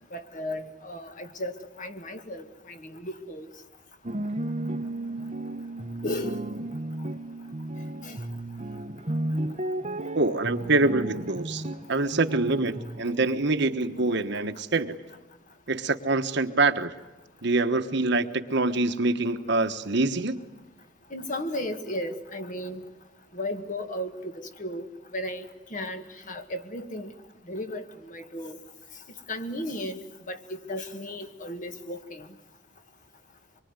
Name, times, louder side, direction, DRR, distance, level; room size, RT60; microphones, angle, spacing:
voice 1, 0.1-3.5 6.0-6.4 8.0-8.2 21.1-22.9 23.3-27.1 27.5-28.6 29.3-30.0 30.3-32.3, left 1 dB, 40° left, 7 dB, 1.9 m, -35 dB
sound 1, 4.0-13.3, right 1 dB, 35° right, 1.0 m, -33 dB
voice 2, 10.1-11.6 11.9-14.9 15.7-16.9 17.4-20.4, right 2 dB, 60° right, 8 dB, 1.3 m, -25 dB
25.0 x 23.5 x 9.7 m, 1.1 s
head